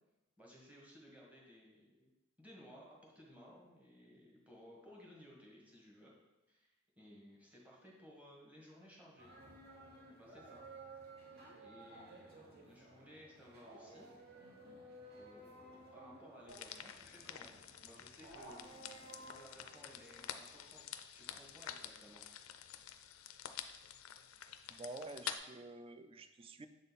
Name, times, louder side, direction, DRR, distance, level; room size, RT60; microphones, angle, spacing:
voice 1, 0.4-2.1 2.4-6.1 6.5-9.3 10.2-10.6 11.6-14.1 15.1-20.8 21.1-22.2, equal, 5° right, -4 dB, 1.5 m, -59 dB
sound 1, 9.2-20.3, right 2 dB, 50° right, 1.2 m, -56 dB
sound 2, 16.5-25.4, left 10 dB, 85° left, 0.4 m, -49 dB
voice 2, 24.7-26.7, right 2 dB, 25° right, 10 dB, 0.4 m, -49 dB
7.2 x 3.9 x 4.1 m, 1.0 s
head